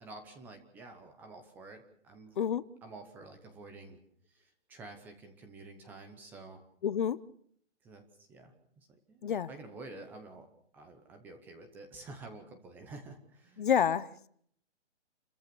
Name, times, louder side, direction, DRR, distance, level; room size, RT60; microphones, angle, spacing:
voice 1, 0.0-2.4 2.8-4.0 4.3-6.7 7.8-10.5 10.7-13.7, right 3 dB, 5° right, 7 dB, 0.8 m, -50 dB
voice 2, 6.8-7.2 9.2-9.5 13.6-14.3, left 8 dB, 45° left, 17 dB, 0.8 m, -29 dB
29.5 x 14.0 x 6.9 m, 0.65 s
hypercardioid pair, 170°, 35 cm